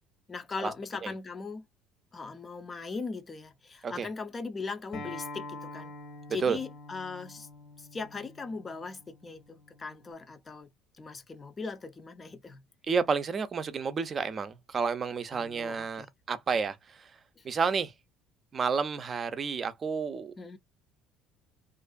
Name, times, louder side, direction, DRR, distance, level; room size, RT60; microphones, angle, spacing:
voice 1, 0.3-1.7 2.1-5.9 6.3-7.5 7.8-10.7 11.0-12.6 15.3-16.1 17.4-17.5 20.4-20.6, left 4 dB, 30° left, 0.6 m, -39 dB
Acoustic guitar, 4.9-10.1, left 2 dB, 60° left, 1.1 m, -46 dB
voice 2, 12.9-17.1 17.4-17.9 18.5-20.3, right 5 dB, 35° right, 0.5 m, -30 dB
2.6 x 2.4 x 2.3 m
supercardioid pair, 90°, 0 cm